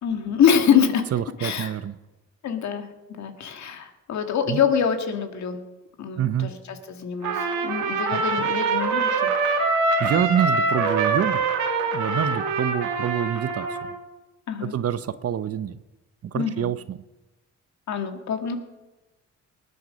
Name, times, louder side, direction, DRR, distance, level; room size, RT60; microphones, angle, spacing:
voice 1, 0.0-1.1 1.4-1.7 2.4-2.9 3.2-5.6 6.0-9.3 14.5-14.7 16.3-16.7 17.9-18.6, left 7 dB, 65° left, 6 dB, 1.9 m, -25 dB
voice 2, 1.1-2.0 4.5-4.6 6.2-6.5 8.1-8.5 9.6-9.7 10.0-11.5 11.9-13.8 14.6-15.8 16.3-17.0, right 9 dB, 50° right, 14 dB, 0.8 m, -26 dB
Trumpet, 7.2-14.0, right 4 dB, 90° right, 2.3 m, -24 dB
20.0 x 9.6 x 5.3 m, 1.1 s
cardioid pair, 90°, 30 cm